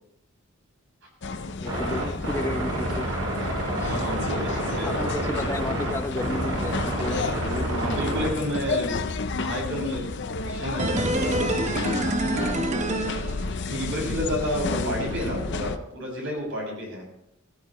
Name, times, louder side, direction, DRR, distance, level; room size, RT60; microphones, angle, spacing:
sound 1, 1.2-15.8, left 3 dB, 55° left, 0.7 m, -31 dB
voice 1, 1.6-3.1 3.8-3.9 4.8-8.4 14.7-14.9, left 1 dB, 15° left, 7 dB, 0.8 m, -33 dB
sound 2, 1.6-8.3, right 1 dB, 85° right, 5.7 m, -29 dB
voice 2, 3.8-5.0 7.7-9.0 9.4-11.6 13.7-17.0, equal, 60° right, -1 dB, 7.0 m, -31 dB
sound 3, 10.8-13.9 14.2-14.3, right 1 dB, 35° right, 0.9 m, -27 dB
18.5 x 14.5 x 3.1 m, 0.77 s
head